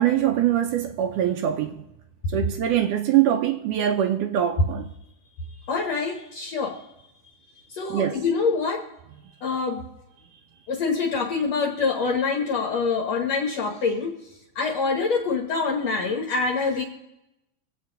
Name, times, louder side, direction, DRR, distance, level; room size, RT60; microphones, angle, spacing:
voice 1, 0.0-1.8 2.3-4.9 7.9-8.2, right 11 dB, 80° right, 2.2 m, -23 dB
voice 2, 5.7-6.8 7.7-8.8 9.4-9.8 10.7-14.1 14.6-16.8, left 4 dB, 60° left, 2.3 m, -25 dB
24.0 x 8.1 x 3.9 m
omnidirectional pair, 3.7 m